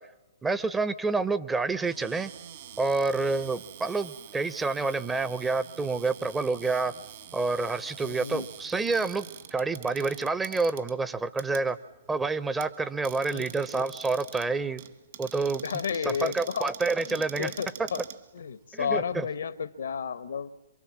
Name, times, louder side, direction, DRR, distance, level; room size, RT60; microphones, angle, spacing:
voice 1, 0.4-2.3 2.8-6.9 7.3-9.2 9.5-11.8 12.1-14.8 15.2-15.6 16.0-17.5 17.8-17.9 18.7-19.3, right 3 dB, 10° right, 14 dB, 0.8 m, -28 dB
Cupboard open or close, 1.8-18.8, right 11 dB, 55° right, 2.0 m, -46 dB
voice 2, 8.0-8.5 13.3-13.5 15.6-16.7 17.1-18.0 18.3-20.5, left 6 dB, 70° left, 14 dB, 1.0 m, -32 dB
27.0 x 24.0 x 7.4 m, 1.1 s
figure-of-eight pair, 120°, 0 cm